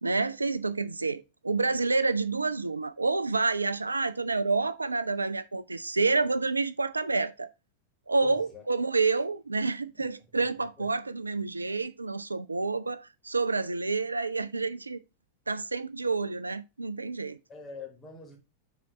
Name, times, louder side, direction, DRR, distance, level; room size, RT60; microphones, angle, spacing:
voice 1, 0.0-7.5 8.1-15.0 15.5-17.4, right 3 dB, 80° right, 0.3 m, -28 dB
voice 2, 8.2-8.7 10.0-10.1 10.3-10.4 10.8-10.9 17.2-18.4, left 4 dB, 25° left, 2.4 m, -45 dB
5.1 x 3.8 x 5.5 m
figure-of-eight pair, 90°, 0 cm